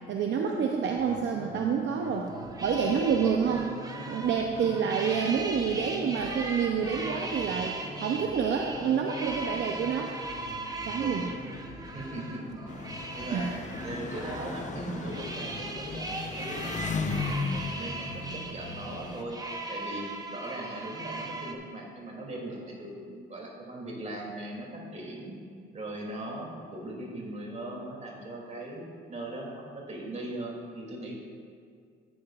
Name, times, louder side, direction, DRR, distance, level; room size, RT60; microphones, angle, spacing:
voice 1, 0.1-2.3 2.6-3.7 4.0-7.7 8.0-10.2 10.9-11.3 13.3-13.6, right 6 dB, 65° right, 2 dB, 0.7 m, -28 dB
sound 1, 1.0-16.0, left 2 dB, 75° left, 1.6 m, -46 dB
sound 2, 2.0-21.5, right 2 dB, 20° right, 1.0 m, -39 dB
voice 2, 11.0-11.4 11.9-12.6 13.1-13.5 13.8-19.4 19.7-25.3 25.7-28.8 29.1-31.2, right 1 dB, 35° right, -2 dB, 2.8 m, -39 dB
Engine, 12.7-19.2, left 4 dB, 40° left, 0.9 m, -36 dB
14.5 x 9.6 x 2.5 m, 2.1 s
cardioid pair, 90°, 20 cm